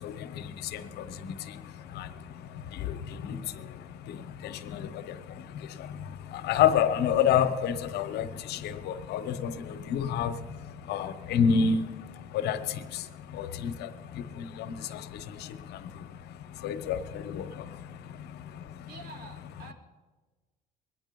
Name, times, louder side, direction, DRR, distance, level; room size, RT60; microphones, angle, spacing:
voice 1, 0.0-18.9, left 7 dB, 80° left, 11 dB, 1.0 m, -31 dB
voice 2, 18.9-19.7, right 3 dB, 65° right, 4 dB, 2.7 m, -47 dB
22.0 x 9.3 x 5.3 m, 1.3 s
cardioid pair, 110°, 17 cm